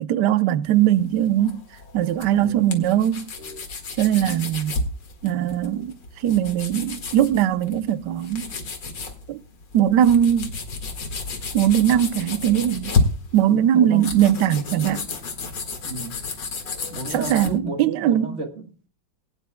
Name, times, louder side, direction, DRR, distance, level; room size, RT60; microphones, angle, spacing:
voice 1, 0.0-1.6 1.9-3.3 4.0-4.8 5.2-6.0 6.2-8.5 9.3-9.4 9.7-10.5 11.5-13.0 13.3-15.1 17.1-18.4, right 11 dB, 70° right, 1.2 m, -20 dB
sound 1, 0.7-17.6, left 3 dB, 65° left, 2.5 m, -31 dB
voice 2, 2.3-2.8 3.4-3.6 4.1-4.4 13.7-14.4 15.8-16.2 16.9-18.9, right 2 dB, 40° right, 1.6 m, -33 dB
21.0 x 9.9 x 2.2 m
omnidirectional pair, 2.1 m